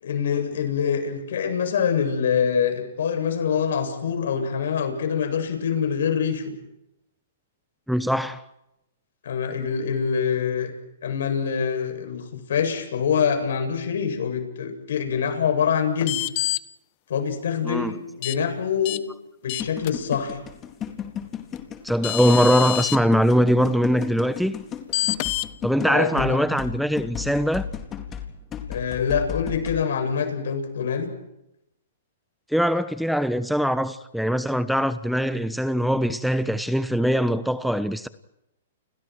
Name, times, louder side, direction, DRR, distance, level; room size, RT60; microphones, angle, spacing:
voice 1, 0.0-6.4 9.2-10.7 11.0-16.2 17.1-19.0 19.4-20.4 25.8-26.4 28.7-31.1, left 7 dB, 70° left, 8.0 m, -25 dB
voice 2, 7.9-8.4 17.6-17.9 21.8-24.6 25.6-27.7 32.5-38.1, equal, ahead, 1.1 m, -22 dB
sound 1, 16.0-16.6 18.2-18.4 18.8-19.0 19.5-19.9 21.6-21.7 22.0-23.0 24.9-25.5, left 20 dB, 45° left, 1.1 m, -26 dB
sound 2, 19.6-29.8, left 8 dB, 25° left, 4.1 m, -34 dB
30.0 x 30.0 x 4.8 m
hypercardioid pair, 135°, 0 cm